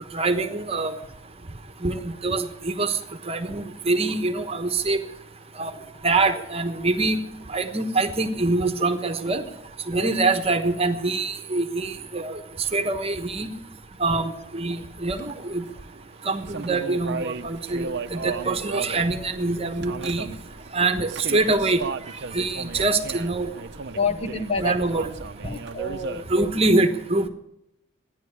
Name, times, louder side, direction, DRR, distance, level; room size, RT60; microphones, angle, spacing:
voice 1, 0.1-0.9 1.8-3.0 3.3-5.0 5.6-5.7 6.0-7.2 7.5-9.4 9.9-12.4 12.7-13.5 14.0-15.6 16.3-20.3 20.7-21.8 22.3-23.5 24.6-25.1 26.3-27.3, right 3 dB, 30° right, 7 dB, 1.1 m, -24 dB
sound 1, 15.1-26.6, right 4 dB, 55° right, 0.7 m, -36 dB
voice 2, 23.9-24.8 25.4-26.5, left 3 dB, 30° left, 6 dB, 1.0 m, -29 dB
13.5 x 10.5 x 9.7 m, 0.82 s
head